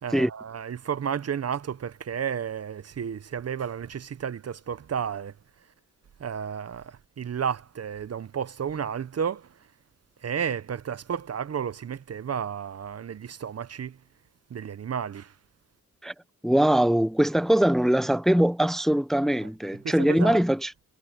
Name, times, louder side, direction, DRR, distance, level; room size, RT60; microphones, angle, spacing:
voice 1, 0.0-5.3 6.2-9.6 10.2-14.0 14.5-15.3 19.8-20.4, right 7 dB, 50° right, 0.8 m, -32 dB
voice 2, 16.4-20.7, right 1 dB, ahead, 0.7 m, -22 dB
cardioid pair, 70°, 31 cm